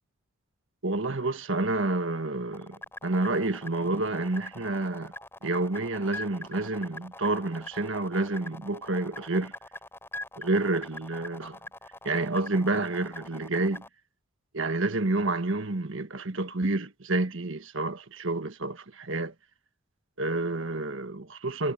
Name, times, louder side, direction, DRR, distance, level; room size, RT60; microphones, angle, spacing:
voice 1, 0.8-5.1 5.4-9.5 10.4-11.6 12.0-13.8 14.5-19.3 20.2-21.7, right 2 dB, 60° right, 1.5 m, -29 dB
sound 1, 2.5-13.9, left 1 dB, 10° left, 4.2 m, -43 dB
head